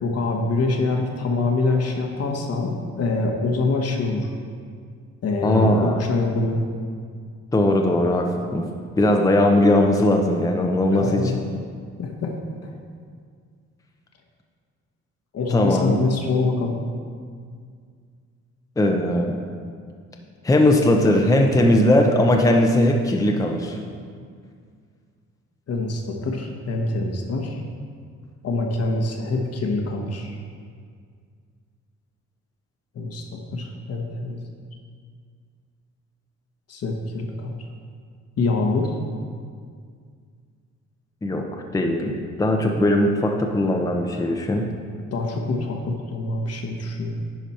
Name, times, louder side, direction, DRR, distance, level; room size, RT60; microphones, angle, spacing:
voice 1, 0.0-4.3 5.2-6.6 10.9-11.4 12.0-12.3 12.6-12.7 15.3-16.8 25.7-27.6 28.4-30.3 32.9-33.2 33.5-34.4 36.7-37.6 38.4-38.9 45.1-47.2, left 3 dB, 55° left, 2 dB, 1.2 m, -25 dB
voice 2, 5.4-5.9 7.5-8.3 8.5-8.6 9.0-11.2 15.5-16.0 18.8-19.4 20.4-23.8 41.2-41.5 41.7-44.7, left 1 dB, 10° left, 2 dB, 0.7 m, -19 dB
10.0 x 5.0 x 4.3 m, 2.1 s
cardioid pair, 90°, 30 cm